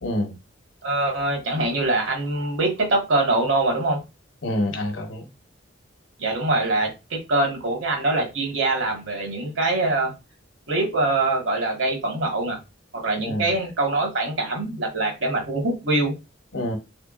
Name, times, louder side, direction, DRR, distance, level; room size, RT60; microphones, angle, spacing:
voice 1, 0.0-0.4 4.4-5.3 13.2-13.5 16.5-16.8, left 1 dB, 75° left, 1.0 m, -27 dB
voice 2, 0.8-4.0 6.2-10.1 10.7-12.6 12.9-16.1, right 2 dB, 75° right, 1.4 m, -23 dB
3.5 x 3.5 x 2.4 m
head